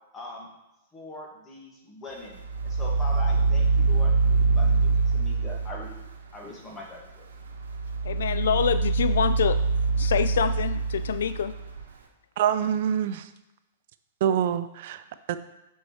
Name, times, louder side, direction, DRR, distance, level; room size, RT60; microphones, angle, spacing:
voice 1, 0.1-0.5 0.9-6.0 6.3-7.3, left 2 dB, 20° left, -1 dB, 1.9 m, -42 dB
sound 1, 2.4-6.1 7.4-11.8, right 4 dB, 85° right, 1.0 m, -24 dB
voice 2, 8.0-9.6 10.0-11.5, left 8 dB, 75° left, 12 dB, 0.3 m, -26 dB
voice 3, 12.4-13.3 14.2-15.4, right 9 dB, 60° right, 12 dB, 0.4 m, -26 dB
9.2 x 4.5 x 3.2 m, 0.94 s
hypercardioid pair, 125°, 0 cm